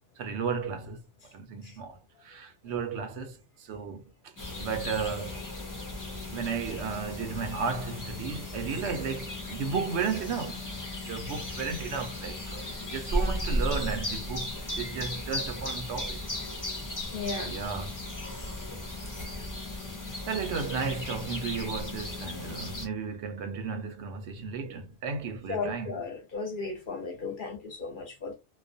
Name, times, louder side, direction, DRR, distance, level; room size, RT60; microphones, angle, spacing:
voice 1, 0.2-1.0 1.3-4.3 4.6-5.4 6.3-10.7 11.0-16.2 17.4-17.9 20.3-26.0, right 5 dB, 75° right, 0.8 m, -34 dB
sound 1, 4.4-22.9, left 1 dB, 30° left, 0.3 m, -36 dB
voice 2, 17.1-17.6 25.5-28.4, left 4 dB, 55° left, 0.7 m, -35 dB
2.3 x 2.1 x 2.5 m
omnidirectional pair, 1.2 m